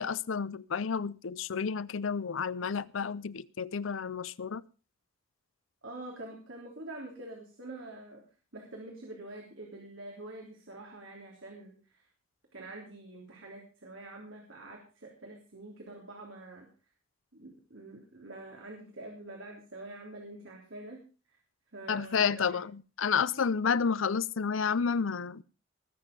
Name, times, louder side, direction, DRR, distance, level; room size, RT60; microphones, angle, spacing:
voice 1, 0.0-4.6 21.9-25.4, left 6 dB, 75° left, 0.6 m, -30 dB
voice 2, 5.8-8.2 8.5-12.0 12.5-16.7 17.3-21.0 21.7-22.6, right 2 dB, 75° right, 3.4 m, -46 dB
19.5 x 7.5 x 5.3 m
head